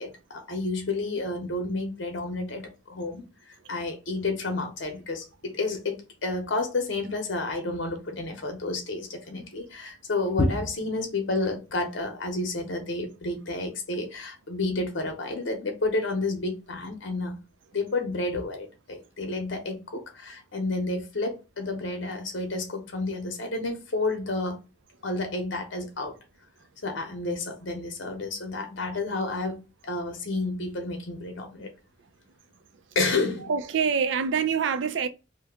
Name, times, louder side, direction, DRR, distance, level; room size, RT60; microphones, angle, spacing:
voice 1, 0.0-3.3 3.7-17.4 17.7-24.6 25.0-26.1 26.8-31.7 32.9-33.5, left 2 dB, 75° left, 0.8 m, -30 dB
voice 2, 33.5-35.1, right 6 dB, 75° right, 0.4 m, -25 dB
2.8 x 2.2 x 3.4 m
head